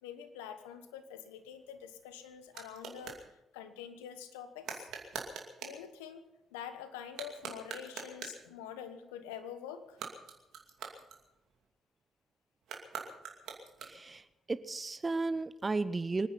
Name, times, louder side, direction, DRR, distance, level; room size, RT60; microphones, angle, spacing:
voice 1, 0.0-4.9 5.6-10.0, left 9 dB, 85° left, 10 dB, 1.1 m, -46 dB
sound 1, 1.5-3.3 4.6-5.8 7.0-8.5 9.8-11.7 12.6-14.2, right 6 dB, 70° right, 2.5 m, -45 dB
voice 2, 13.8-14.2 14.5-16.3, right 3 dB, 30° right, 14 dB, 0.8 m, -34 dB
24.5 x 9.9 x 5.7 m, 0.94 s
hypercardioid pair, 45°, 0 cm